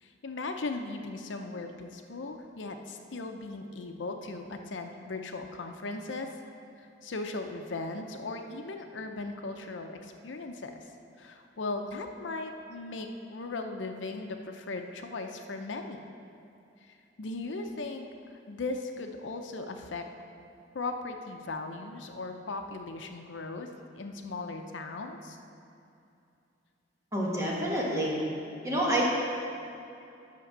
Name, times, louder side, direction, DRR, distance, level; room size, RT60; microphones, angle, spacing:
voice 1, 0.0-6.3 6.8-10.9 11.2-16.0 16.8-20.1 20.7-23.7 24.0-25.4, left 3 dB, 70° left, 5 dB, 0.7 m, -38 dB
voice 2, 27.1-28.2 28.6-29.0, right 1 dB, 15° right, -5 dB, 2.0 m, -28 dB
10.5 x 5.9 x 6.6 m, 2.6 s
head